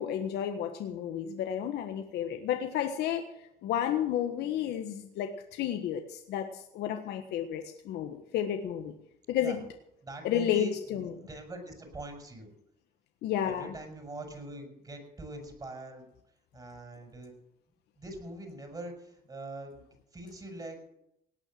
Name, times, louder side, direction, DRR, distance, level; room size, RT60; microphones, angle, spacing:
voice 1, 0.0-8.9 9.3-9.6 10.2-11.1 13.2-13.7, left 10 dB, 75° left, 5 dB, 1.4 m, -32 dB
voice 2, 10.0-12.5 13.4-16.1 16.5-17.4 18.0-20.9, right 1 dB, 25° right, 4 dB, 5.7 m, -43 dB
18.0 x 9.0 x 7.7 m, 0.78 s
cardioid pair, 110°, 17 cm